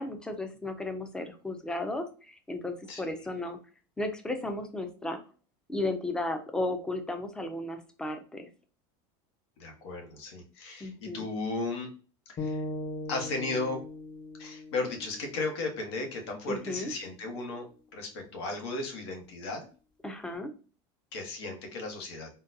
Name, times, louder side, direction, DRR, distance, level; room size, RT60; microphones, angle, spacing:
voice 1, 0.0-3.6 4.0-5.2 5.7-8.5 10.8-11.2 16.5-16.9 20.0-20.5, left 2 dB, 5° left, 6 dB, 0.4 m, -34 dB
voice 2, 9.6-11.9 12.3-12.6 13.1-13.8 14.4-17.7 17.9-19.7 21.1-22.3, left 3 dB, 90° left, 3 dB, 1.1 m, -35 dB
sound 1, 12.4-16.5, left 2 dB, 35° left, 0.9 m, -40 dB
3.8 x 2.2 x 2.6 m, 0.36 s
supercardioid pair, 150°, 13 cm